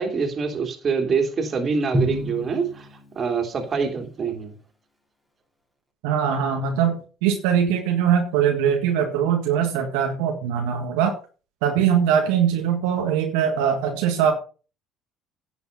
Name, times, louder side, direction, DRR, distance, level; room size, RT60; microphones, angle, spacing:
voice 1, 0.0-2.9 3.1-4.5, right 5 dB, 40° right, 3.2 m, -25 dB
Drum, 1.9-3.7, equal, 5° left, 5.1 m, -29 dB
voice 2, 6.0-11.1 11.6-14.3, right 8 dB, 80° right, 1.7 m, -21 dB
10.5 x 7.0 x 5.6 m
hypercardioid pair, 70°, 0 cm